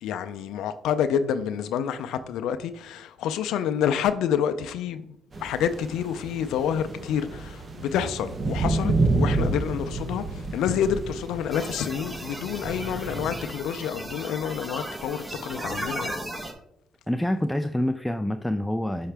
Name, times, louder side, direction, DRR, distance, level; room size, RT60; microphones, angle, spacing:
voice 1, 0.0-16.1, left 8 dB, 85° left, 0.4 m, -28 dB
sound 1, 5.3-13.3, right 2 dB, 40° right, 0.9 m, -29 dB
sound 2, 11.5-16.5, right 1 dB, 10° right, 1.0 m, -36 dB
voice 2, 17.1-19.1, left 1 dB, 5° left, 0.3 m, -26 dB
5.8 x 5.5 x 3.3 m
cardioid pair, 90°, 0 cm